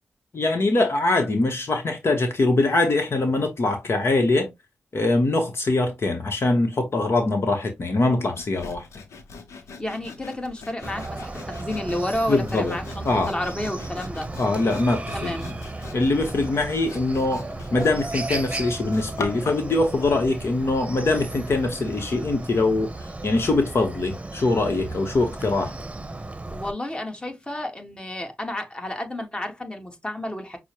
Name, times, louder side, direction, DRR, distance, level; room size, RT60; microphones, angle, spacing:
voice 1, 0.3-4.5 4.9-8.9 12.3-12.8 13.0-13.3 14.4-15.4 15.9-22.9 23.2-25.7, left 2 dB, 60° left, 0.9 m, -23 dB
Sawing, 8.3-19.7, left 4 dB, 90° left, 0.7 m, -41 dB
voice 2, 9.8-14.3 15.1-15.5 26.5-30.6, left 1 dB, 20° left, 1.3 m, -31 dB
Chicken rooster, 10.8-26.7, right 2 dB, 25° right, 0.8 m, -35 dB
6.1 x 2.1 x 2.8 m
cardioid pair, 40°, 5 cm